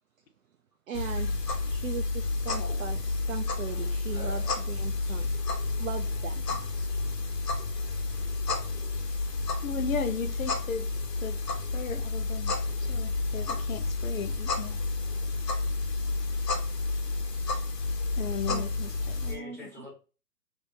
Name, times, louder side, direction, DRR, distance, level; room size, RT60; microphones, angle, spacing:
sound 1, 0.9-19.3, left 3 dB, 75° left, 1.1 m, -30 dB
voice 1, 0.9-1.4 1.6-5.3 5.8-6.7 18.2-18.7 19.2-19.9, right 7 dB, 55° right, 0.5 m, -39 dB
voice 2, 4.1-4.5 5.0-5.3 6.8-6.9 7.7-8.2 12.1-12.2 13.3-13.6 17.4-17.5 19.3-19.9, left 2 dB, 5° left, 0.9 m, -48 dB
voice 3, 9.6-10.9 11.2-11.4 11.7-12.5 12.9-14.8 18.2-18.9 19.6-19.7, left 6 dB, 55° left, 0.6 m, -35 dB
4.2 x 2.6 x 2.7 m
figure-of-eight pair, 140°, 49 cm